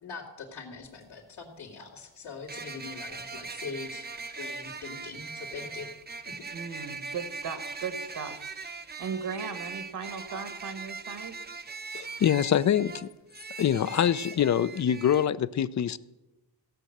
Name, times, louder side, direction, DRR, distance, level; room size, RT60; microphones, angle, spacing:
voice 1, 0.0-4.1 4.3-5.9, left 5 dB, 70° left, 2.5 m, -42 dB
sound 1, 0.8-0.9 2.5-15.3, right 4 dB, 25° right, 0.7 m, -40 dB
voice 2, 6.5-8.5 9.0-11.4, right 6 dB, 60° right, 1.2 m, -37 dB
voice 3, 11.9-13.1 13.6-16.0, left 9 dB, 45° left, 0.5 m, -25 dB
16.0 x 6.4 x 7.9 m
cardioid pair, 105°, 42 cm